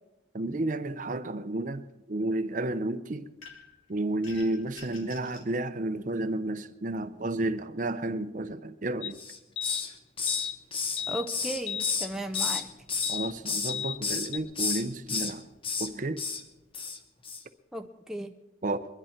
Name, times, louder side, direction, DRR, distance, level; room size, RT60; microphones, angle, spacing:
voice 1, 0.3-3.3 3.9-9.2 13.1-15.4 15.8-16.2 18.6-18.9, right 2 dB, 40° right, 0.6 m, -31 dB
sound 1, 3.4-3.8 4.2-5.5, left 4 dB, 85° left, 2.5 m, -48 dB
sound 2, 9.0-9.1 9.6-9.8 10.3-10.6 11.0-11.3 11.7-12.0 12.3-12.6 13.0-13.3 13.7-14.0 14.3-14.4, left 8 dB, 65° left, 0.8 m, -34 dB
Hiss, 9.1-9.9 10.2-12.6 12.9-13.7 14.0-14.3 14.5-15.3 15.6-15.9 16.2-16.4 16.7-17.0 17.2-17.4, left 5 dB, 30° left, 1.0 m, -31 dB
voice 2, 11.1-12.7 17.7-18.3, right 1 dB, 5° right, 0.5 m, -36 dB
23.0 x 11.0 x 4.5 m
head